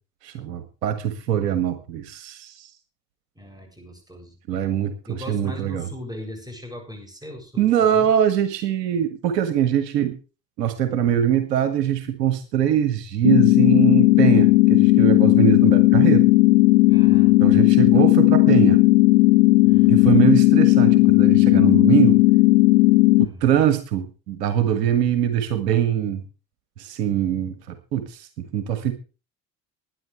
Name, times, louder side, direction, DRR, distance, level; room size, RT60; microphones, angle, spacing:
voice 1, 0.2-2.7 4.5-5.9 7.6-10.2 10.6-16.3 17.4-18.8 19.9-22.2 23.2-26.2 26.8-28.9, right 10 dB, 70° right, 10 dB, 1.7 m, -22 dB
voice 2, 3.3-4.4 5.1-8.1 16.9-17.6 19.6-20.2 23.2-23.6, left 1 dB, 10° right, 3 dB, 7.9 m, -39 dB
sound 1, 13.2-23.3, left 21 dB, 60° left, 1.0 m, -15 dB
20.5 x 10.0 x 3.4 m, 0.34 s
figure-of-eight pair, 60°, 50 cm